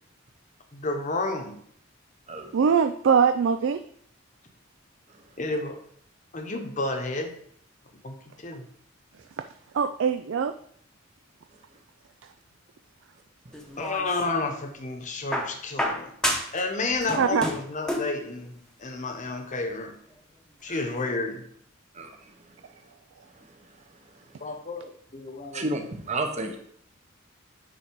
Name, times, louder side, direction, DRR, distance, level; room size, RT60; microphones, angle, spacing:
voice 1, 0.7-1.6 5.4-5.8 6.3-7.4 8.0-8.7 13.8-16.1 16.5-19.9 20.6-21.4 24.4-25.6 26.4-26.5, left 3 dB, 40° left, 4 dB, 1.0 m, -31 dB
voice 2, 2.5-3.8 9.7-10.5 17.2-17.4, right 6 dB, 65° right, 9 dB, 0.4 m, -22 dB
sound 1, 13.5-14.5 15.3-16.7 16.9-18.2 19.3-19.4, equal, 5° left, 0.9 m, -30 dB
voice 3, 25.5-26.6, right 2 dB, 35° right, 4 dB, 1.0 m, -30 dB
9.3 x 4.0 x 4.6 m, 0.64 s
head